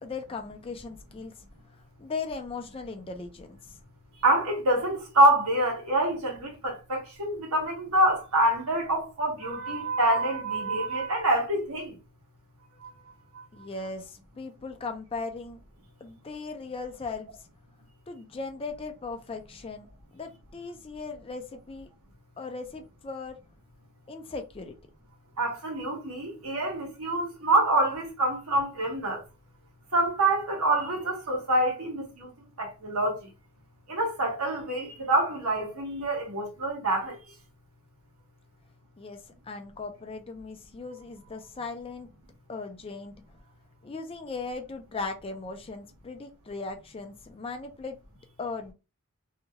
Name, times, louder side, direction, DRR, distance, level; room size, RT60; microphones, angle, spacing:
voice 1, 0.0-1.3 1.7-3.6 13.5-15.6 16.0-17.3 18.1-19.9 20.1-21.9 22.4-23.4 24.1-24.8 39.0-42.1 42.5-43.1 43.8-48.0 48.4-48.7, left 4 dB, 25° left, 0.4 m, -38 dB
voice 2, 4.2-12.0 12.8-12.9 25.4-29.2 29.9-32.3 32.6-33.2 33.9-37.2, right 1 dB, 85° right, 1.2 m, -26 dB
2.8 x 2.3 x 2.8 m
head